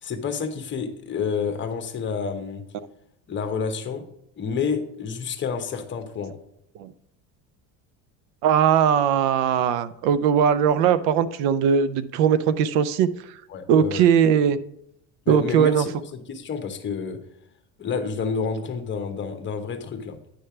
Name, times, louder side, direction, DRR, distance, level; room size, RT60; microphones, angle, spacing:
voice 1, 0.0-2.6 3.3-4.0 4.4-6.3 13.5-14.0 15.2-17.2 17.8-20.2, left 5 dB, 30° left, 6 dB, 1.0 m, -29 dB
voice 2, 8.4-13.1 13.7-14.6 15.3-15.9, right 8 dB, 85° right, 15 dB, 0.6 m, -19 dB
9.9 x 3.3 x 5.7 m, 0.76 s
cardioid pair, 135°, 39 cm